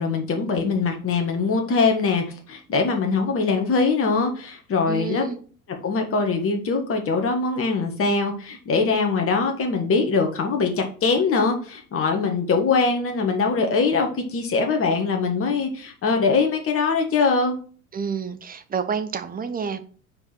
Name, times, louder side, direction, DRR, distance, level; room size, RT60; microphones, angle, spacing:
voice 1, 0.0-5.3 5.8-17.6, left 4 dB, 30° left, 1.6 m, -22 dB
voice 2, 4.9-5.4 17.9-19.8, right 6 dB, 20° right, 0.9 m, -29 dB
5.3 x 4.7 x 6.4 m
figure-of-eight pair, 75°, 43 cm